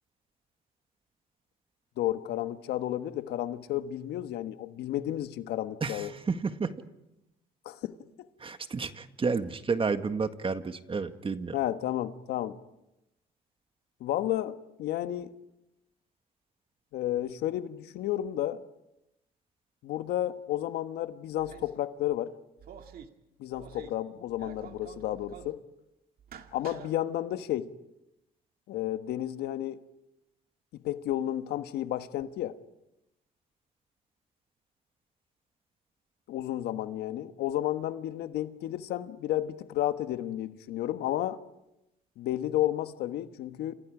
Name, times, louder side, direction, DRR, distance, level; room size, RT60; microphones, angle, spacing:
voice 1, 2.0-6.1 7.6-7.9 11.5-12.6 14.0-15.3 16.9-18.6 19.8-22.3 23.4-25.6 26.5-27.7 28.7-29.8 30.8-32.6 36.3-41.4 42.2-43.7, left 13 dB, 75° left, 1.3 m, -32 dB
voice 2, 5.8-6.7 8.4-11.6, right 4 dB, 30° right, 1.8 m, -31 dB
sound 1, 21.4-21.8 22.6-23.1 23.5-24.0 24.3-25.6 26.2-26.9, right 8 dB, 60° right, 2.3 m, -48 dB
29.0 x 28.0 x 5.0 m
supercardioid pair, 70°, 17 cm